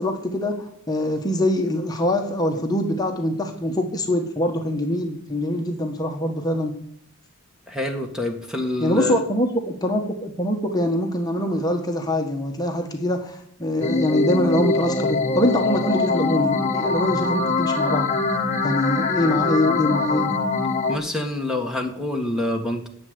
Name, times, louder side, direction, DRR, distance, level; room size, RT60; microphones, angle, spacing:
voice 1, 0.0-6.7 8.8-18.1 18.6-20.3, left 1 dB, 20° left, 3 dB, 1.4 m, -24 dB
voice 2, 7.7-9.2 20.9-22.9, left 1 dB, 5° right, 3 dB, 1.5 m, -26 dB
sound 1, 13.8-21.0, left 3 dB, 35° left, 1.2 m, -23 dB
9.9 x 7.9 x 9.6 m, 0.68 s
head